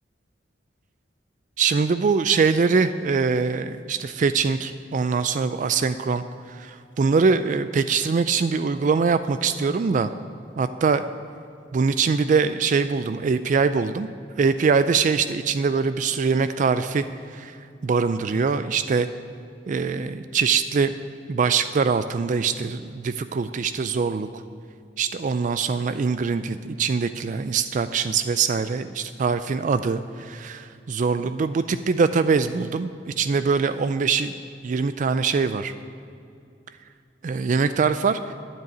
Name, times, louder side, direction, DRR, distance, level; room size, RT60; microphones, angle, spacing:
voice 1, 1.6-10.1 10.6-11.0 11.7-14.1 14.4-17.0 17.3-17.5 17.8-19.1 19.7-21.0 21.3-24.3 25.0-32.9 33.2-34.4 34.6-35.7 37.2-38.3, right 5 dB, 45° right, 11 dB, 0.3 m, -23 dB
9.7 x 7.6 x 9.2 m, 2.5 s
head